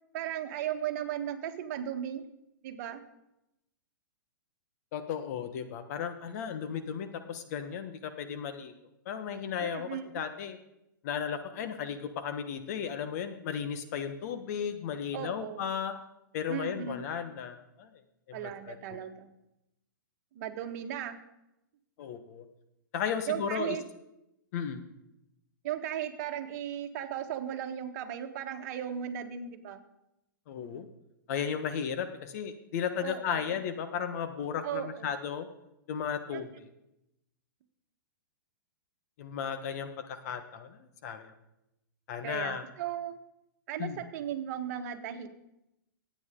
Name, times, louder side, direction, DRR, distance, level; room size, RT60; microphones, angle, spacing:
voice 1, 0.1-2.2 2.6-3.0 9.6-10.1 15.1-15.7 16.5-17.1 18.3-19.3 20.3-21.2 23.3-23.8 25.6-29.8 33.0-33.6 34.6-35.1 36.3-36.4 42.2-43.2 43.7-45.3, right 10 dB, 50° right, 5 dB, 1.6 m, -36 dB
voice 2, 4.9-8.7 9.0-10.6 11.0-15.9 16.3-17.9 18.3-19.0 22.0-22.4 22.9-23.8 24.5-24.9 30.5-30.9 31.3-35.5 35.9-36.7 39.2-41.3 42.1-42.6 43.8-44.0, left 7 dB, 50° left, 8 dB, 1.4 m, -35 dB
23.5 x 9.1 x 3.8 m, 0.89 s
hypercardioid pair, 140°, 11 cm